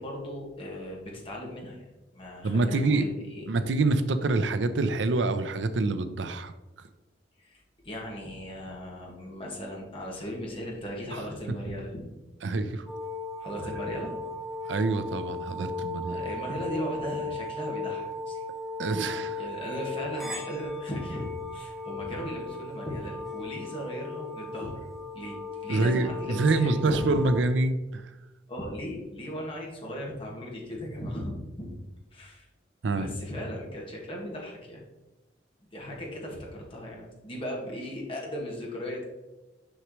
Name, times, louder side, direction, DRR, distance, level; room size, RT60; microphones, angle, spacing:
voice 1, 0.0-1.9 2.1-3.5 7.4-12.1 13.4-14.4 16.1-18.4 19.4-24.7 25.1-25.4 25.6-27.3 28.5-31.3 31.6-31.7 32.1-32.5 32.9-34.8 35.6-39.1, equal, 30° left, -2 dB, 1.9 m, -37 dB
voice 2, 2.4-3.1 3.5-6.5 11.1-11.2 11.7-11.8 12.4-12.9 14.6-16.2 18.8-19.4 25.7-28.1 32.8-33.1, right 3 dB, 80° right, 11 dB, 0.5 m, -26 dB
sound 1, 12.9-27.4, left 2 dB, ahead, 1.3 m, -37 dB
6.3 x 6.0 x 3.1 m, 1.1 s
head